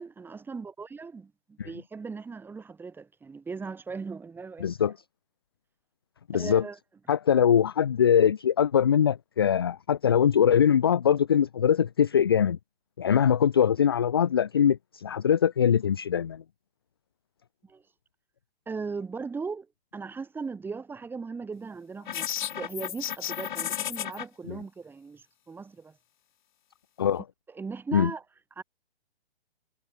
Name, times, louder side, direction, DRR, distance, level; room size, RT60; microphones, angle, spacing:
voice 1, 0.0-4.9 6.3-6.8 17.6-17.8 18.7-19.7 19.9-26.0 27.1-28.2 28.6-28.7, right 4 dB, 5° right, 1.8 m, -38 dB
voice 2, 4.6-4.9 6.3-6.6 7.1-12.6 13.0-16.4 24.5-24.6 27.0-27.2 27.9-28.1, left 8 dB, 25° left, 0.3 m, -22 dB
sound 1, 22.1-24.2, left 10 dB, 45° left, 6.7 m, -33 dB
figure-of-eight pair, 130°, 32 cm